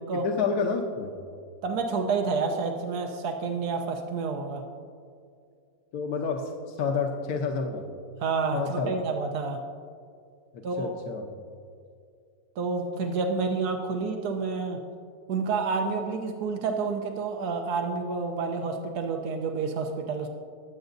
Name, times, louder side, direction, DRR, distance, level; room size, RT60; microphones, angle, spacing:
voice 1, 0.1-1.1 5.9-7.8 8.5-9.0 10.5-11.3, left 5 dB, 85° left, 3 dB, 1.3 m, -29 dB
voice 2, 1.6-4.6 8.2-9.6 10.6-10.9 12.6-14.8 15.3-20.3, right 4 dB, 90° right, 4 dB, 1.3 m, -29 dB
22.0 x 8.0 x 2.6 m, 2.3 s
omnidirectional pair, 1.6 m